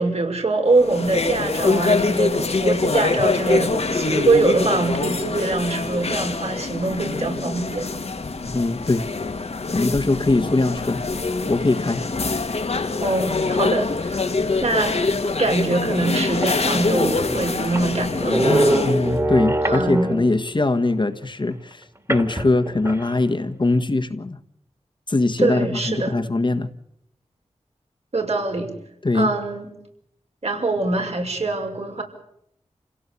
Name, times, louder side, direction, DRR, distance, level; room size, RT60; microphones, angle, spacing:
voice 1, 0.0-7.9 13.0-14.3 14.6-15.0 15.4-18.4 19.6-20.1 25.4-26.2 28.1-28.7 29.1-29.7 30.4-32.0, right 2 dB, 65° right, 3 dB, 5.7 m, -23 dB
sound 1, 0.7-19.2, left 3 dB, 65° left, 1.9 m, -24 dB
voice 2, 8.5-9.1 9.7-11.0 11.5-12.0 18.8-24.4 25.1-26.7 29.0-29.3, left 2 dB, 40° left, 8 dB, 1.5 m, -21 dB
sound 2, 16.1-16.2 16.3-20.4 22.1-23.2, right 1 dB, 25° right, 2.7 m, -24 dB
28.0 x 17.0 x 8.5 m, 0.74 s
wide cardioid pair, 80°, 12 cm